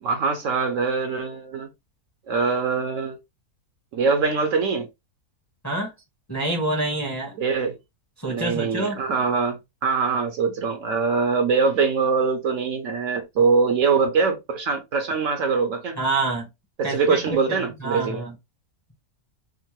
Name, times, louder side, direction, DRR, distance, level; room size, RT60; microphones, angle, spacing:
voice 1, 0.0-1.7 2.3-3.2 3.9-4.9 7.4-7.8 8.2-16.0 16.8-18.2, right 5 dB, 65° right, 0.9 m, -23 dB
voice 2, 6.3-7.3 8.2-9.0 16.0-16.5 16.8-18.3, right 2 dB, 15° left, 0.7 m, -27 dB
3.6 x 2.0 x 2.9 m
omnidirectional pair, 1.6 m